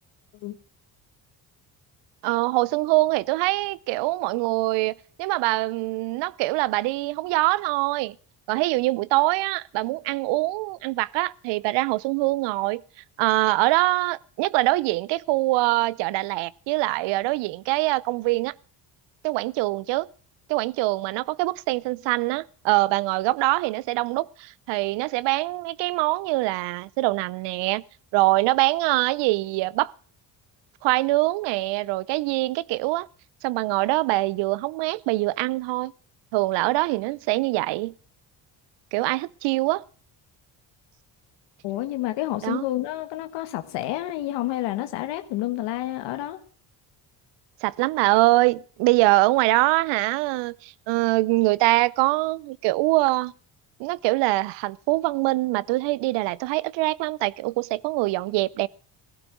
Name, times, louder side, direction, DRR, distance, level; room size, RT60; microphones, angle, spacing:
voice 1, 2.2-8.2 8.5-12.8 13.2-18.5 19.2-20.1 20.5-27.8 28.1-29.9 30.8-33.1 33.4-35.9 36.3-37.9 38.9-39.8 42.4-42.6 47.6-53.3 53.8-58.7, right 20 dB, 85° right, 0.6 m, -23 dB
voice 2, 41.6-46.4, left 15 dB, 85° left, 1.3 m, -29 dB
16.5 x 12.5 x 6.0 m
cardioid pair, 90°, 41 cm